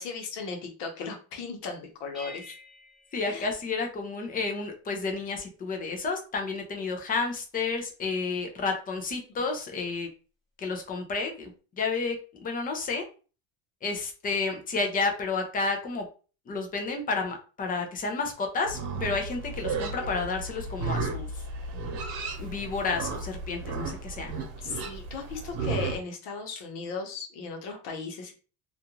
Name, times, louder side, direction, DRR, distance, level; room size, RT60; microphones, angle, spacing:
voice 1, 0.0-2.5 3.3-3.5 24.6-28.3, left 4 dB, 65° left, 3 dB, 1.0 m, -36 dB
sound 1, 2.1-4.4, left 2 dB, ahead, 1.0 m, -49 dB
voice 2, 3.1-10.1 10.6-13.0 13.8-16.1 16.5-21.4 22.4-24.3, left 4 dB, 20° left, 3 dB, 0.4 m, -31 dB
Livestock farm animals working animals, 18.6-26.0, right 3 dB, 80° right, 1.0 m, -34 dB
2.5 x 2.4 x 2.9 m, 0.36 s
cardioid pair, 145°, 45 cm